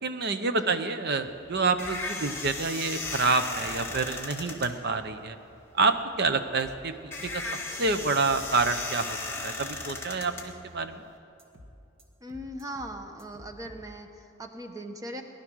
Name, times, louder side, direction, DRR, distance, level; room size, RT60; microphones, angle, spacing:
voice 1, 0.0-5.4 5.7-7.5 7.8-9.2 9.4-11.0, right 4 dB, 50° right, 10 dB, 0.8 m, -28 dB
voice 2, 0.5-0.8 12.2-15.2, right 1 dB, 15° right, 5 dB, 1.0 m, -39 dB
sound 1, 1.2-11.1, left 3 dB, 10° left, 1.5 m, -37 dB
sound 2, 1.8-2.0 2.4-2.6 3.0-3.2 3.6-4.1 6.6-6.8 7.2-7.4 7.8-8.0 8.2-8.7 11.4-11.7 12.0-12.1 12.3-12.9 13.2-13.8, left 1 dB, 75° right, 1.6 m, -49 dB
19.0 x 11.0 x 6.3 m, 2.8 s
head